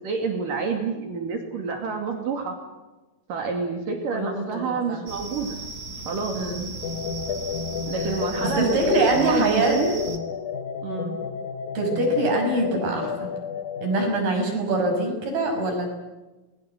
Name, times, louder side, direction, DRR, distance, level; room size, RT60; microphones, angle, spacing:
voice 1, 0.0-2.6 3.3-5.6 6.1-6.4 7.9-10.1 10.8-11.2, right 5 dB, 65° right, 3 dB, 4.1 m, -28 dB
voice 2, 4.1-5.0 6.3-6.7 8.0-9.8 11.7-13.3 13.8-15.9, right 2 dB, 85° right, 3 dB, 7.8 m, -24 dB
sound 1, 5.1-10.2, right 2 dB, 30° right, 1.8 m, -36 dB
sound 2, 6.8-14.2, left 6 dB, 65° left, 2.5 m, -32 dB
28.5 x 22.0 x 8.0 m, 1.1 s
omnidirectional pair, 4.3 m